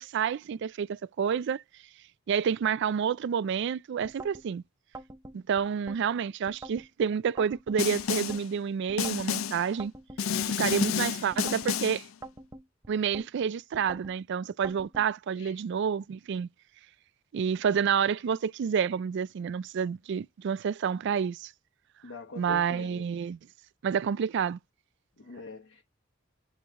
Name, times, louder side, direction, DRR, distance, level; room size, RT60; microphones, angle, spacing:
voice 1, 0.0-1.6 2.3-4.6 5.3-9.9 10.4-12.1 12.9-16.5 17.3-21.5 22.4-23.4 23.8-24.6, right 7 dB, 60° right, 0.3 m, -29 dB
sound 1, 4.0-4.5 4.9-6.0 6.5-6.9 7.4-8.4 8.9-9.3 9.8-10.9 11.3-11.7 12.2-13.3 13.7-14.2 14.6-15.1, right 2 dB, 15° right, 0.6 m, -45 dB
Snare drum, 7.8-8.5 9.0-9.7 10.2-12.1, left 7 dB, 85° left, 0.5 m, -30 dB
voice 2, 22.0-23.1 25.2-25.8, left 3 dB, 65° left, 1.1 m, -43 dB
9.2 x 3.2 x 3.6 m
head